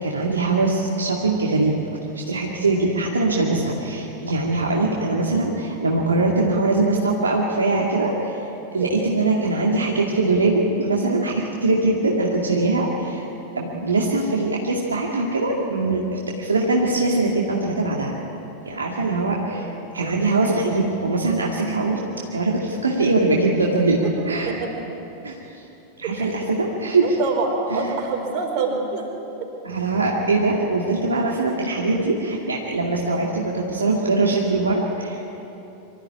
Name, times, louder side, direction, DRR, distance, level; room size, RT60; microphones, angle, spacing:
voice 1, 0.0-1.8 2.1-8.5 8.7-13.3 13.5-18.1 18.7-22.0 22.3-24.0 24.3-24.5 25.2-25.3 26.0-27.2 27.7-27.9 29.6-35.3, right 2 dB, 75° right, -2 dB, 2.3 m, -22 dB
voice 2, 19.5-20.1 24.0-24.1 24.4-24.7 26.0-26.4 27.0-29.0, right 4 dB, 40° right, 1 dB, 4.7 m, -27 dB
24.5 x 14.0 x 10.0 m, 2.9 s
figure-of-eight pair, 90°, 0 cm